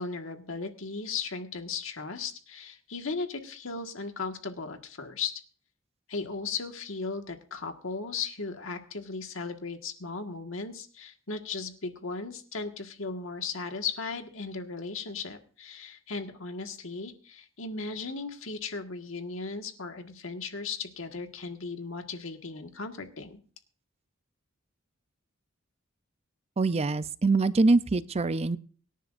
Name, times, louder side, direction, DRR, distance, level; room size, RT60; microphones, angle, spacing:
voice 1, 0.0-5.3 6.1-23.4, left 4 dB, 80° left, 5 dB, 1.7 m, -36 dB
voice 2, 26.6-28.6, right 3 dB, 30° right, 14 dB, 0.5 m, -24 dB
24.5 x 10.0 x 2.5 m, 0.40 s
head